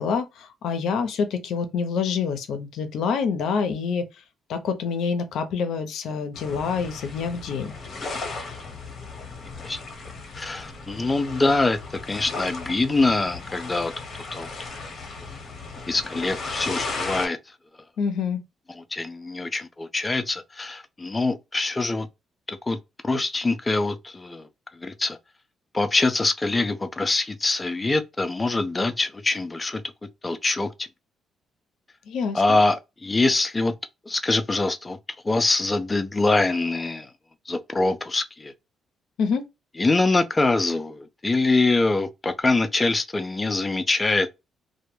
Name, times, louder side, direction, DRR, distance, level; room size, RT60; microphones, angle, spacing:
voice 1, 0.0-4.1 4.5-7.7 18.0-18.4 32.1-32.6 39.2-39.5, left 6 dB, 75° left, 0.5 m, -26 dB
sound 1, 6.3-17.3, left 3 dB, 50° left, 0.8 m, -36 dB
voice 2, 10.3-11.8 12.1-13.9 14.3-14.5 15.9-17.4 18.8-22.1 22.5-22.8 23.0-24.5 24.8-25.2 25.7-29.8 30.2-30.9 32.3-33.7 34.1-35.0 35.2-37.1 37.5-38.5 39.8-44.3, left 3 dB, 20° left, 0.4 m, -24 dB
2.1 x 2.1 x 3.1 m
cardioid pair, 90°, 0 cm